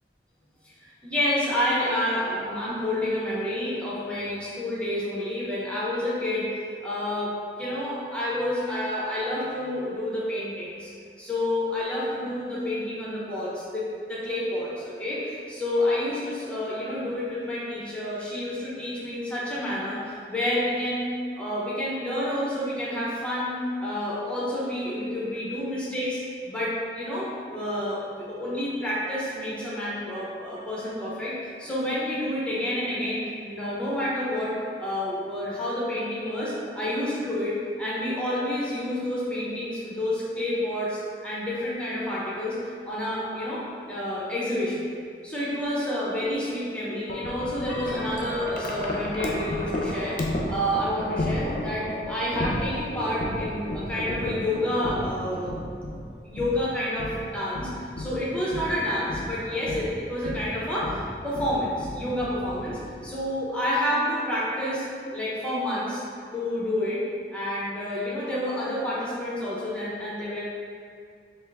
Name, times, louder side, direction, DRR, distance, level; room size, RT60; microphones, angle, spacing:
voice 1, 0.8-6.5 6.8-10.9 11.2-21.1 21.3-26.2 26.5-42.6 42.9-44.9 45.2-55.6 56.2-57.7 58.0-64.8 65.1-66.0 66.3-67.0 67.3-70.4, left 1 dB, 5° left, -8 dB, 0.6 m, -29 dB
Wind chime, 47.1-63.3, left 1 dB, 50° left, 0.4 m, -33 dB
3.4 x 2.4 x 3.4 m, 2.3 s
head